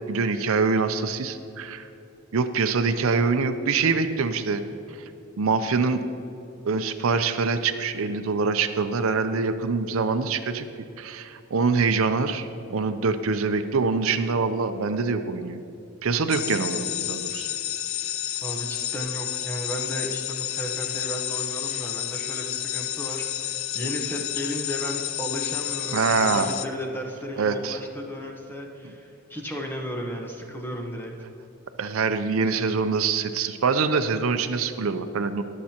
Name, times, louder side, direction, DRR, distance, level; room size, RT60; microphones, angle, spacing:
voice 1, 0.1-1.9 2.3-4.6 5.4-6.1 6.6-10.7 11.0-15.6 16.0-17.5 25.9-26.5 27.4-27.8 31.8-35.4, right 4 dB, 70° right, 9 dB, 0.5 m, -24 dB
sound 1, 16.3-26.7, left 12 dB, 65° left, 0.5 m, -30 dB
voice 2, 18.4-31.1, equal, 10° left, 1 dB, 1.0 m, -34 dB
21.5 x 7.4 x 2.9 m, 2.8 s
head